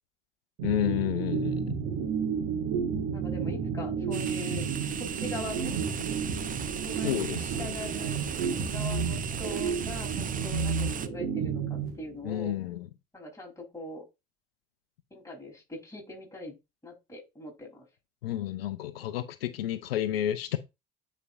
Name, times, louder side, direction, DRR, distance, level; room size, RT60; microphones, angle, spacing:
voice 1, 0.6-1.8 7.0-7.8 12.2-12.9 18.2-20.6, left 12 dB, 80° left, 0.5 m, -31 dB
sound 1, 0.6-12.5, right 6 dB, 65° right, 1.8 m, -31 dB
voice 2, 3.1-4.7 5.0-5.7 6.8-8.2 8.7-12.6 13.1-14.0 15.1-16.6 16.8-17.9, left 2 dB, 10° left, 3.6 m, -42 dB
sound 2, 4.1-11.1, right 7 dB, 30° right, 0.6 m, -37 dB
9.5 x 4.2 x 2.5 m
hypercardioid pair, 60°, 29 cm